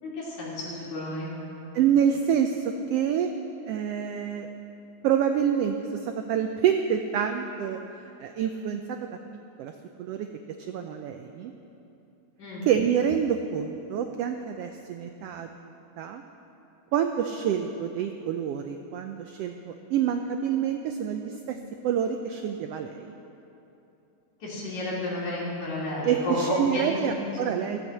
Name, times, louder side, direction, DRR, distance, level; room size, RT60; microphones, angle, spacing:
voice 1, 0.0-1.3 12.4-12.7 24.4-27.4, left 1 dB, 75° left, -6 dB, 4.4 m, -31 dB
voice 2, 1.7-3.3 3.7-4.5 5.0-7.8 8.2-8.8 9.6-9.7 10.0-10.3 10.7-11.5 12.7-16.2 16.9-21.6 21.8-23.1 26.0-27.8, right 8 dB, 90° right, 6 dB, 1.3 m, -27 dB
14.5 x 8.1 x 7.4 m, 2.9 s
omnidirectional pair, 3.3 m